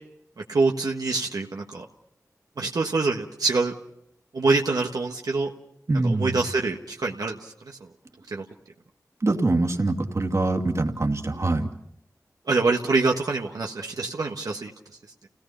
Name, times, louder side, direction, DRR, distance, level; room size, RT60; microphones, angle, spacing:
voice 1, 0.5-1.8 2.6-3.7 4.3-5.5 6.0-7.8 8.3-8.4 12.5-14.7, right 3 dB, 85° right, 1 dB, 1.5 m, -25 dB
voice 2, 5.9-6.4 9.2-11.7, right 2 dB, 50° right, 3 dB, 2.5 m, -24 dB
30.0 x 17.5 x 5.7 m, 0.77 s
wide cardioid pair, 55°, 6 cm